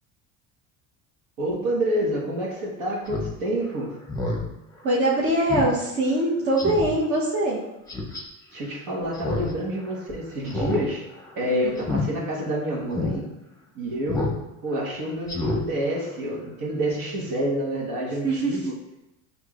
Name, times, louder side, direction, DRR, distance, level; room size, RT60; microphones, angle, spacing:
voice 1, 1.4-4.0 8.5-11.0 11.4-13.3 13.7-14.3 14.6-18.7, right 1 dB, 65° right, -3 dB, 1.5 m, -28 dB
Speech synthesizer, 3.1-3.3 3.7-3.8 4.1-4.4 4.8-4.9 5.5-5.7 6.1-6.2 6.6-6.9 7.9-8.2 9.1-9.5 9.8-9.9 10.5-10.8 11.1-11.3 11.8-12.0 12.5-12.6 12.9-13.1 14.1-14.4 14.7-14.8 15.3-15.6 15.9-16.0, left 2 dB, 10° left, 0.8 m, -28 dB
voice 2, 4.8-7.6 11.4-11.8 18.2-18.6, right 1 dB, 40° right, -5 dB, 0.9 m, -23 dB
6.1 x 2.9 x 2.4 m, 0.91 s
supercardioid pair, 105°, 37 cm